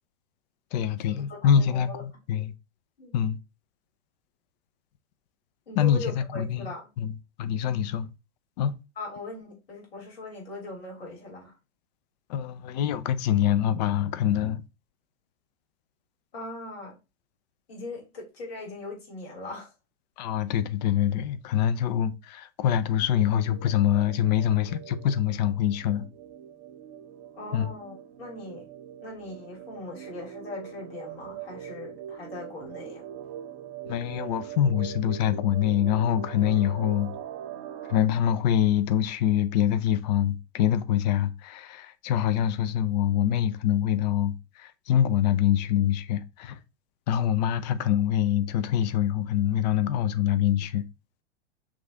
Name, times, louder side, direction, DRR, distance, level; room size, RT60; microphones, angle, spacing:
voice 1, 0.7-2.5 3.1-3.4 5.8-6.7 7.0-7.1 7.4-8.1 8.6-8.7 12.3-14.6 20.2-26.1 27.5-27.7 33.9-37.1 37.9-46.6 47.1-50.8, left 10 dB, 40° left, 0.5 m, -25 dB
voice 2, 1.3-2.0 3.0-3.2 5.7-6.9 9.0-11.5 16.3-16.9 17.7-19.7 27.3-28.7 29.0-33.0, left 2 dB, 60° left, 2.9 m, -40 dB
sound 1, 23.1-38.0, right 10 dB, 35° right, 0.7 m, -42 dB
6.0 x 2.5 x 3.3 m
figure-of-eight pair, 100°, 35 cm